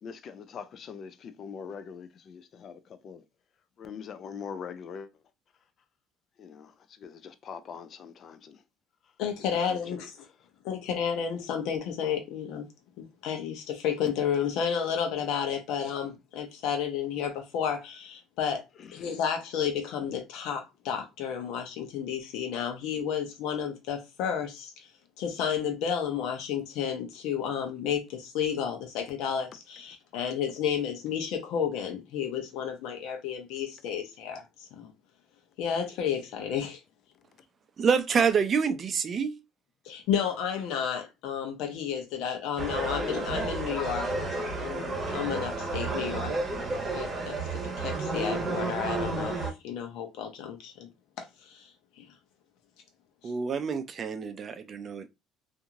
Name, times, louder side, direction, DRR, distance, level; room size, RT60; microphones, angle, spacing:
voice 1, 0.0-3.2 3.8-5.1 6.4-6.7 7.0-8.6 9.7-10.0 18.8-18.9 44.6-44.7, left 6 dB, 45° left, 0.4 m, -42 dB
voice 2, 9.2-10.1 10.6-12.6 13.2-18.6 18.9-24.7 25.2-34.9 35.6-36.8 39.8-44.1 44.6-46.4 46.9-47.4 47.8-50.9 51.2-51.7 52.0-52.1, left 8 dB, 75° left, 0.7 m, -31 dB
voice 3, 37.8-39.4 53.2-55.1, right 6 dB, 40° right, 0.4 m, -27 dB
sound 1, 42.6-49.5, right 2 dB, 20° right, 1.1 m, -31 dB
2.8 x 2.5 x 2.4 m
cardioid pair, 105°, 0 cm